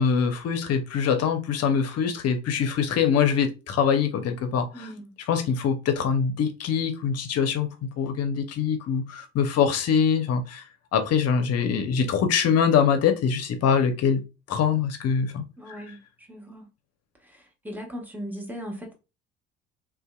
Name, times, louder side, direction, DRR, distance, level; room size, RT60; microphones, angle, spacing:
voice 1, 0.0-4.9 5.3-7.7 8.0-10.6 10.9-14.2 14.5-15.4, left 7 dB, 45° left, 0.7 m, -23 dB
voice 2, 4.7-5.1 15.6-16.0 16.3-16.7 17.3-17.4 17.6-18.9, equal, 5° right, 1.0 m, -37 dB
2.7 x 2.2 x 2.2 m
hypercardioid pair, 60°, 35 cm